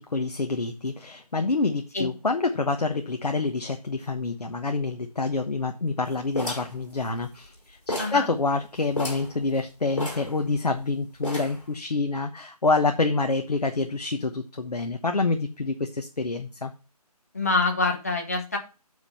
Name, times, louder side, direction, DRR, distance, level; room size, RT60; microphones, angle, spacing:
voice 1, 0.0-16.7, left 3 dB, 75° left, 5 dB, 1.1 m, -27 dB
sound 1, 6.4-7.6 7.9-8.3 8.6-8.7 8.9-9.3 10.0-10.8 11.2-11.7, left 1 dB, 50° left, 4.6 m, -33 dB
voice 2, 7.9-8.3 17.3-18.6, left 3 dB, 25° left, 3 dB, 1.1 m, -25 dB
8.7 x 4.8 x 5.6 m, 0.32 s
figure-of-eight pair, 175°, 20 cm